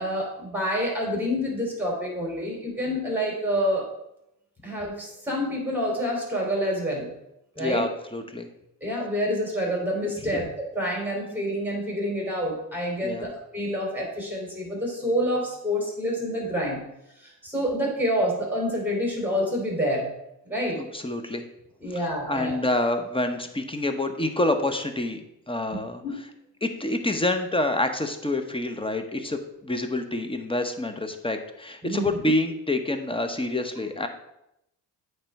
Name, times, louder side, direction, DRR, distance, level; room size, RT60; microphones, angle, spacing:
voice 1, 0.0-3.9 4.6-7.1 7.5-7.8 8.8-16.8 17.2-20.1 20.4-20.8 21.8-22.5 26.0-26.1 31.8-32.1, equal, 5° right, -2 dB, 2.8 m, -27 dB
voice 2, 7.6-8.5 10.2-10.4 13.0-13.3 20.7-21.4 21.9-25.2 25.5-26.0 26.6-34.1, left 2 dB, 15° left, 7 dB, 0.9 m, -27 dB
8.6 x 3.4 x 5.3 m, 0.84 s
supercardioid pair, 70°, 40 cm